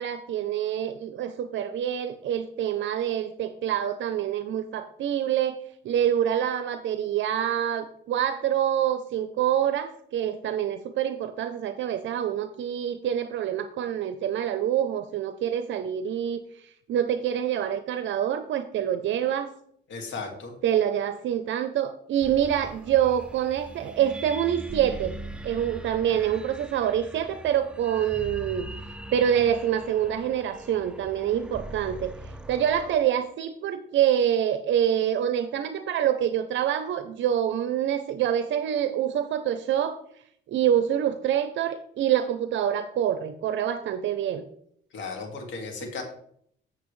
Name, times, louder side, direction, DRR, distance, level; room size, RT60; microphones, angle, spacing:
voice 1, 0.0-5.6 5.8-19.5 20.6-25.2 25.4-40.0 40.5-44.4, right 10 dB, 70° right, 9 dB, 0.6 m, -26 dB
voice 2, 19.9-20.5 44.9-46.0, left 4 dB, 75° left, 2 dB, 2.1 m, -35 dB
sound 1, 22.2-33.0, right 1 dB, 5° right, 0.5 m, -41 dB
8.3 x 7.2 x 3.2 m, 0.68 s
cardioid pair, 90°, 20 cm